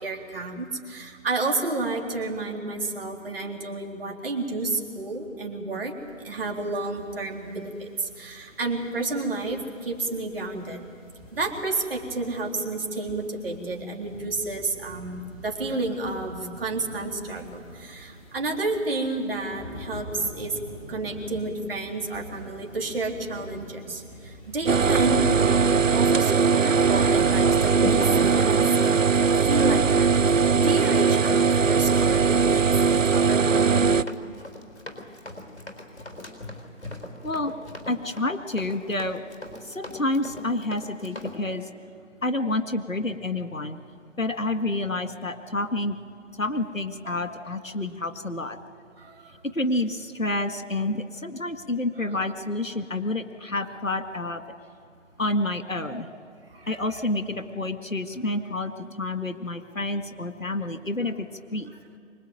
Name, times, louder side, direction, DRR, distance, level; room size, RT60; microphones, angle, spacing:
voice 1, 0.0-6.0 6.2-10.9 11.3-20.5 20.9-28.0 28.3-29.1 29.5-30.1 30.6-33.9 47.0-47.4 49.0-49.3 52.1-52.3 55.9-56.0 56.5-56.8 61.7-61.8, right 2 dB, 45° right, 2 dB, 3.4 m, -31 dB
sound 1, 6.0-25.2, left 1 dB, 10° left, 1.5 m, -47 dB
sound 2, 24.7-34.0, right 5 dB, 75° right, 0.7 m, -20 dB
Run, 25.3-41.4, left 2 dB, 60° left, 4.2 m, -38 dB
voice 2, 37.9-39.2 39.7-41.6 42.2-43.8 44.2-46.0 46.4-48.6 49.5-54.4 55.2-56.1 56.7-61.3 61.5-61.7, left 2 dB, 90° left, 8 dB, 2.0 m, -29 dB
24.0 x 20.5 x 9.2 m, 2.3 s
figure-of-eight pair, 150°, 39 cm